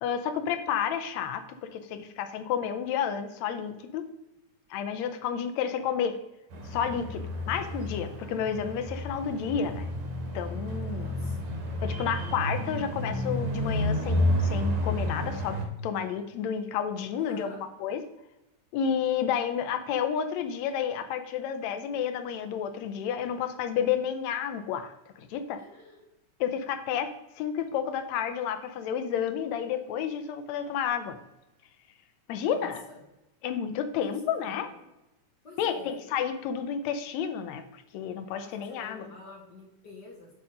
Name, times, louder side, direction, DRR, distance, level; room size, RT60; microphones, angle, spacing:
voice 1, 0.0-4.1 4.7-6.1 6.6-9.9 10.3-11.3 11.8-18.0 18.7-25.6 26.4-31.2 32.3-32.8 33.4-34.7 35.6-39.1, left 8 dB, 80° left, 9 dB, 1.7 m, -31 dB
sound 1, 6.5-15.7, equal, 65° right, 2.5 m, -31 dB
voice 2, 11.0-11.4 17.2-17.6 25.6-26.1 32.4-33.0 34.1-34.9 35.4-36.0 38.2-40.3, left 2 dB, 45° left, -2 dB, 1.4 m, -48 dB
8.5 x 3.8 x 4.9 m, 0.95 s
omnidirectional pair, 3.5 m